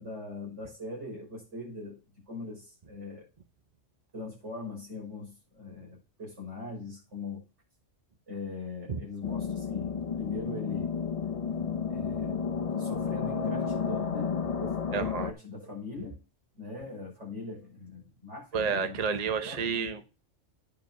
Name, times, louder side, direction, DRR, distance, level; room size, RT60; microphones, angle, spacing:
voice 1, 0.0-2.0 2.3-3.3 4.1-7.4 8.3-10.9 11.9-12.3 12.8-16.2 16.6-19.0 19.4-20.0, left 3 dB, 70° right, 6.0 m, -41 dB
sound 1, 9.2-15.3, left 6 dB, 35° left, 0.8 m, -32 dB
voice 2, 14.9-15.3 18.5-20.0, right 5 dB, 40° right, 0.8 m, -30 dB
9.4 x 5.1 x 5.6 m
omnidirectional pair, 1.3 m